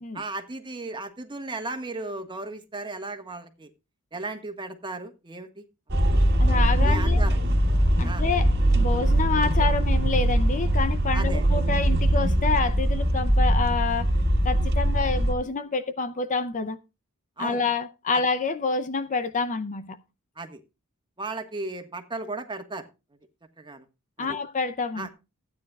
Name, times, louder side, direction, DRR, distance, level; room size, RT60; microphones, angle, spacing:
voice 1, 0.1-3.7 4.1-5.6 6.0-6.1 6.8-7.4 8.0-8.2 11.1-11.4 17.4-17.6 20.4-20.6 21.2-22.9 23.6-23.8 24.2-24.4 24.9-25.1, right 2 dB, 20° right, 1.5 m, -35 dB
sound 1, 5.9-15.3, right 1 dB, 50° right, 1.6 m, -22 dB
voice 2, 6.4-7.2 8.0-14.1 14.4-16.8 17.4-20.0 24.2-25.1, left 4 dB, 35° left, 0.6 m, -28 dB
15.5 x 9.5 x 2.3 m
head